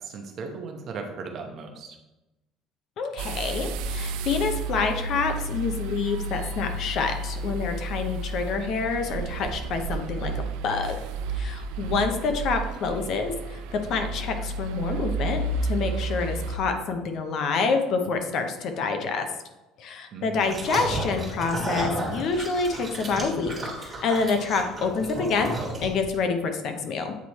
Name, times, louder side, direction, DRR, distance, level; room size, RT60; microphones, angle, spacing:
voice 1, 0.0-2.0 11.8-12.0 20.1-20.6, right 4 dB, 40° right, 3 dB, 0.8 m, -37 dB
voice 2, 3.0-11.0 11.3-19.3 19.8-25.5 25.8-27.1, left 4 dB, 45° left, 6 dB, 0.7 m, -27 dB
sound 1, 3.2-16.6, right 3 dB, 80° right, 0.4 m, -32 dB
sound 2, 20.4-26.1, right 2 dB, 15° right, 1.5 m, -32 dB
8.2 x 3.1 x 4.1 m, 1.0 s
cardioid pair, 170°, 0 cm